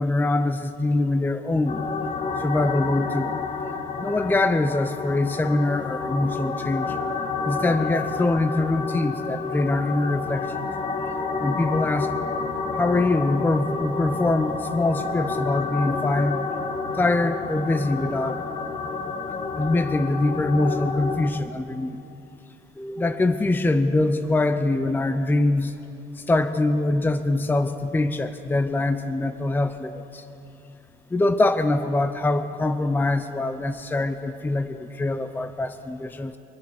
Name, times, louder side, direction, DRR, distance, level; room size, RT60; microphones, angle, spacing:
voice 1, 0.0-1.8 2.4-3.3 4.0-6.9 7.4-10.6 11.4-12.1 12.8-16.5 17.0-18.4 19.6-21.9 22.8-25.7 26.3-30.2 31.1-36.4, left 2 dB, 10° left, 9 dB, 0.6 m, -23 dB
sound 1, 1.7-21.3, left 4 dB, 45° left, 1.2 m, -30 dB
24.5 x 8.5 x 6.4 m, 2.8 s
cardioid pair, 110°, 17 cm